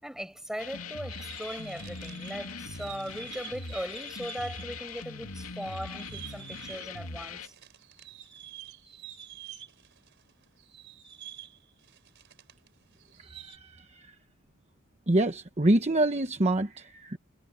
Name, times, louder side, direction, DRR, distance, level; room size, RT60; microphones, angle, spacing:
voice 1, 0.0-7.5, equal, ahead, 7.2 m, -39 dB
sound 1, 0.6-7.5, left 4 dB, 80° left, 2.5 m, -41 dB
sound 2, 0.9-5.0 5.3-12.7 12.9-13.6, right 10 dB, 55° right, 4.8 m, -48 dB
voice 2, 13.3-14.1 15.1-17.2, right 1 dB, 30° right, 1.1 m, -26 dB
head